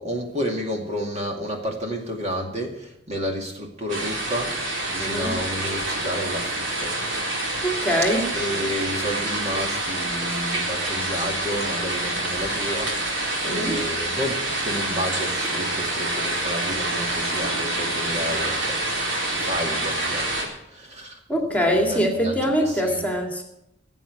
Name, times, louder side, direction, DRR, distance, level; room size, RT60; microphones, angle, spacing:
voice 1, 0.0-6.9 8.3-18.8 19.3-21.2 21.7-23.0, equal, 35° right, 1 dB, 2.3 m, -31 dB
sound 1, 3.9-20.4, right 1 dB, 70° right, 4.3 m, -27 dB
voice 2, 5.0-5.4 7.6-8.2 13.4-13.8 21.3-23.4, equal, 10° left, 2 dB, 2.2 m, -23 dB
17.0 x 8.3 x 8.2 m, 0.83 s
head